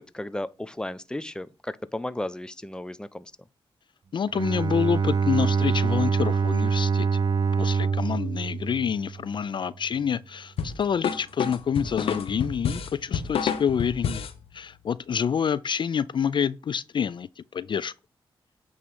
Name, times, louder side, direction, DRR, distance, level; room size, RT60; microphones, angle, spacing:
voice 1, 0.0-3.3, left 1 dB, 10° left, 0.6 m, -34 dB
voice 2, 4.1-7.2 7.6-14.3 14.5-17.9, left 7 dB, 55° left, 0.4 m, -27 dB
Bowed string instrument, 4.3-9.5, right 5 dB, 50° right, 0.6 m, -25 dB
sound 1, 10.6-14.4, left 7 dB, 90° left, 1.0 m, -29 dB
8.5 x 3.2 x 5.4 m
cardioid pair, 65°, 10 cm